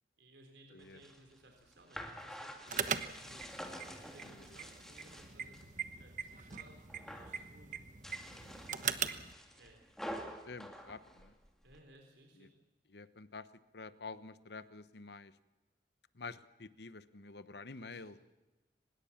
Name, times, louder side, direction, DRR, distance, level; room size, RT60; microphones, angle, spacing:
voice 1, 0.2-3.5 4.0-7.8 9.5-9.9 11.6-12.5 17.8-18.2, right 1 dB, 85° right, 3 dB, 3.8 m, -61 dB
sound 1, 0.8-5.7 6.1-6.6 6.9-7.4 7.9-11.8, equal, 5° left, 2.3 m, -48 dB
sound 2, 2.7-9.3, right 7 dB, 45° right, 1.1 m, -41 dB
voice 2, 10.5-11.3 12.4-12.5 12.9-13.5 13.7-15.4 16.1-18.2, left 4 dB, 75° left, 14 dB, 1.0 m, -48 dB
24.5 x 20.5 x 7.3 m, 1.1 s
head